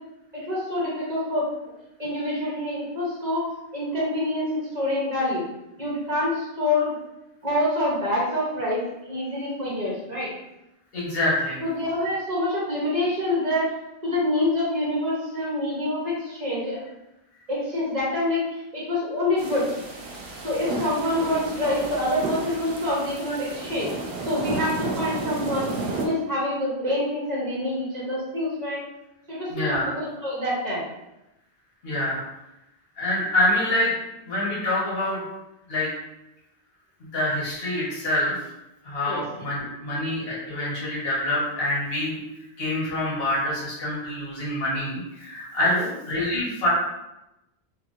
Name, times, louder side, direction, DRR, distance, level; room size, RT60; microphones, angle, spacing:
voice 1, 0.3-1.4 2.0-3.4 3.7-5.4 5.8-6.9 7.4-10.3 11.6-13.7 14.0-16.8 17.5-19.7 20.4-23.9 24.2-25.7 26.0-28.8 29.3-30.8 39.1-39.2 45.8-45.9, left 1 dB, 45° right, -6 dB, 0.9 m, -26 dB
voice 2, 10.9-11.6 29.5-29.9 31.8-32.2 33.0-33.9 34.3-35.2 35.7-35.9 37.1-38.3 38.8-42.2 42.6-46.7, left 1 dB, 65° left, -7 dB, 1.4 m, -26 dB
sound 1, 19.4-26.1, right 2 dB, 80° right, 0.9 m, -32 dB
3.4 x 2.8 x 2.5 m, 0.92 s
omnidirectional pair, 1.1 m